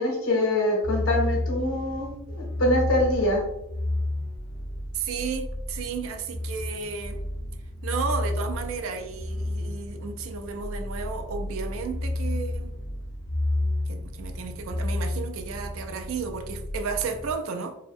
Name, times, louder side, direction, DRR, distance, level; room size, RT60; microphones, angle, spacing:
voice 1, 0.0-3.4, left 1 dB, 75° left, -1 dB, 0.8 m, -24 dB
sound 1, 0.8-17.3, left 1 dB, 45° left, 0.5 m, -31 dB
voice 2, 4.9-7.2 7.8-12.7 13.9-17.8, right 5 dB, 70° right, 6 dB, 0.3 m, -33 dB
2.5 x 2.1 x 2.5 m, 0.84 s
head